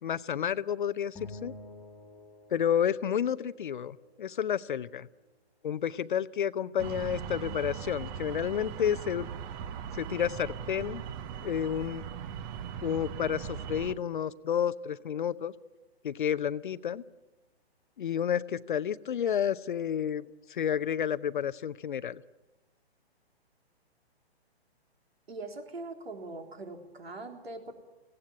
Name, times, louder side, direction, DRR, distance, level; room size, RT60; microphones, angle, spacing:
voice 1, 0.0-1.5 2.5-5.1 5.6-9.3 9.9-11.0 11.4-12.0 12.8-15.5 16.0-17.0 18.0-22.2, left 9 dB, 50° left, 17 dB, 0.7 m, -30 dB
sound 1, 1.2-3.8, left 2 dB, 15° left, 1.9 m, -48 dB
sound 2, 6.8-13.9, right 8 dB, 20° right, 0.9 m, -39 dB
voice 2, 25.3-27.7, right 2 dB, 65° right, 5 dB, 3.8 m, -41 dB
18.5 x 17.0 x 9.7 m, 1.0 s
figure-of-eight pair, 125°, 33 cm